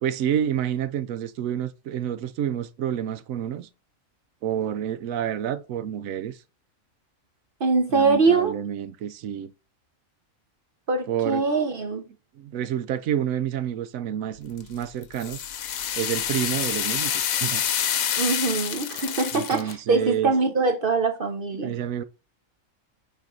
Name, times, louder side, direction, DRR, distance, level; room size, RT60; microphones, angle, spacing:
voice 1, 0.0-3.7 4.4-6.4 7.9-9.5 11.1-11.4 12.4-15.4 16.0-17.6 19.3-20.3 21.5-22.0, right 10 dB, 75° right, 1.0 m, -29 dB
voice 2, 7.6-8.5 10.9-12.1 18.2-21.7, right 4 dB, 50° right, 0.8 m, -23 dB
sound 1, 14.6-19.7, left 9 dB, 85° left, 1.2 m, -27 dB
8.9 x 3.6 x 3.8 m
omnidirectional pair, 1.4 m